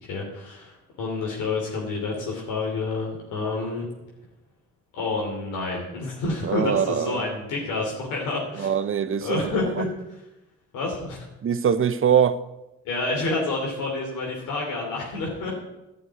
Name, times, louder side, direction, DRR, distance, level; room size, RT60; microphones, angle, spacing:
voice 1, 0.0-3.9 4.9-8.7 9.2-10.2 10.7-11.3 12.8-15.5, left 3 dB, 90° left, 2.9 m, -29 dB
voice 2, 6.4-7.2 8.6-9.4 11.4-12.4, right 8 dB, 45° right, 0.8 m, -22 dB
11.5 x 6.4 x 9.3 m
cardioid pair, 90°, 30 cm